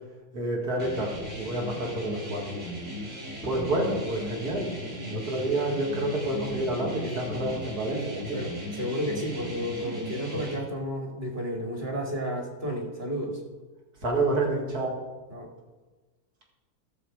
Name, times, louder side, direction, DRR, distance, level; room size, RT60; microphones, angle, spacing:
voice 1, 0.3-2.6 3.4-4.7 5.1-8.4 14.0-14.9, right 2 dB, 85° right, -1 dB, 2.7 m, -29 dB
sound 1, 0.8-10.6, equal, 60° right, 3.4 m, -37 dB
voice 2, 8.3-13.4 15.3-15.5, equal, 35° right, 2 dB, 1.8 m, -32 dB
12.5 x 6.9 x 5.0 m, 1.2 s
omnidirectional pair, 1.6 m